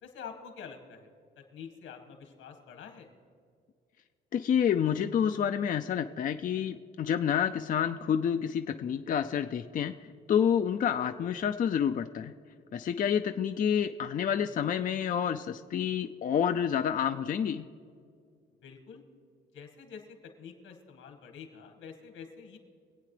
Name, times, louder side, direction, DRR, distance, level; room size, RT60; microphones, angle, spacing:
voice 1, 0.0-1.1 1.4-3.1 18.6-19.0 19.5-22.6, left 6 dB, 85° left, 4 dB, 2.0 m, -47 dB
voice 2, 4.3-9.9 10.3-12.3 12.7-17.7, left 8 dB, 45° left, 7 dB, 0.4 m, -28 dB
24.0 x 8.6 x 3.3 m, 2.2 s
cardioid pair, 90°, 20 cm